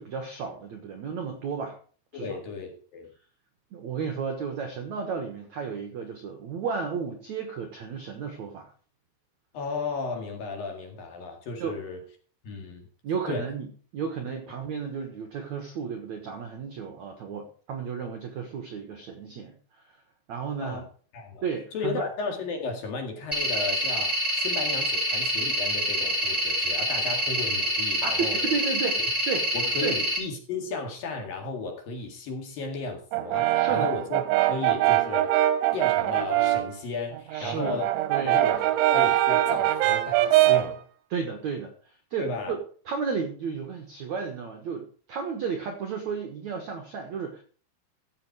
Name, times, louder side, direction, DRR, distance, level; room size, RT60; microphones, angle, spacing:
voice 1, 0.0-1.8 2.1-2.4 3.7-8.7 11.6-11.8 13.0-19.6 19.8-19.9 20.3-20.8 21.4-22.1 28.0-29.5 29.8-30.0 33.5-33.9 37.3-38.4 41.1-41.7 42.1-47.4, right 6 dB, 70° right, 5 dB, 1.7 m, -33 dB
voice 2, 2.1-3.1 9.5-12.0 12.4-12.9 13.3-13.5 20.6-20.8 21.1-21.4 21.7-28.6 29.0-29.1 29.5-35.4 35.7-37.9 38.2-40.8 42.2-42.6, left 4 dB, 55° left, 2 dB, 3.4 m, -34 dB
sound 1, 23.3-30.2, equal, 5° left, 3.0 m, -26 dB
Brass instrument, 33.1-36.8 37.1-40.8, right 15 dB, 90° right, 3.2 m, -23 dB
15.0 x 7.2 x 4.8 m, 0.42 s
omnidirectional pair, 5.4 m